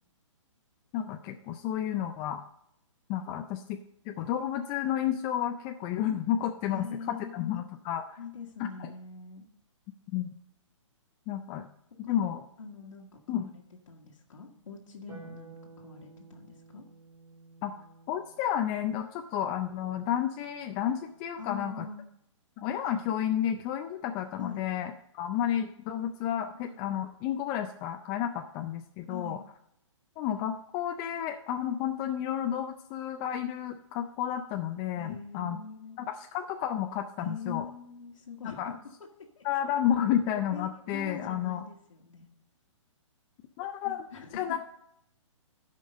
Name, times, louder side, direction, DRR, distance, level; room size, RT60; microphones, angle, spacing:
voice 1, 0.9-2.4 3.1-3.8 4.1-8.2 8.6-8.9 10.1-10.3 11.3-11.6 12.0-12.4 13.3-13.5 17.6-17.7 18.1-21.8 22.6-29.4 30.2-35.6 36.0-37.6 38.6-38.7 39.4-41.6 43.6-44.0 44.3-44.6, left 10 dB, 20° left, 5 dB, 0.4 m, -31 dB
voice 2, 6.6-7.7 8.2-9.5 12.0-12.3 12.6-16.8 21.4-22.0 24.4-24.6 26.7-26.8 29.1-29.4 35.0-36.0 37.2-39.5 40.5-42.3 43.8-44.4, left 5 dB, 80° left, -1 dB, 1.5 m, -43 dB
Harp, 15.1-21.6 23.2-24.2, right 4 dB, 15° right, 2.4 m, -54 dB
12.0 x 5.2 x 5.3 m, 0.74 s
hypercardioid pair, 140°, 16 cm